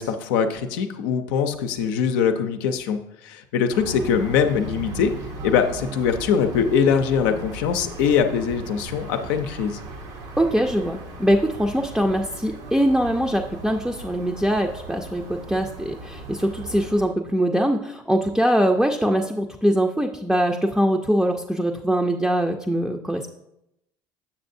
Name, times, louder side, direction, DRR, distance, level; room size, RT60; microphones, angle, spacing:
voice 1, 0.0-5.1 5.4-9.8, left 7 dB, 85° left, 6 dB, 0.6 m, -22 dB
sound 1, 3.7-17.1, right 3 dB, 75° right, 0.8 m, -37 dB
voice 2, 10.4-23.3, equal, 5° right, 2 dB, 0.5 m, -22 dB
7.2 x 6.5 x 2.6 m, 0.84 s
supercardioid pair, 85°, 11 cm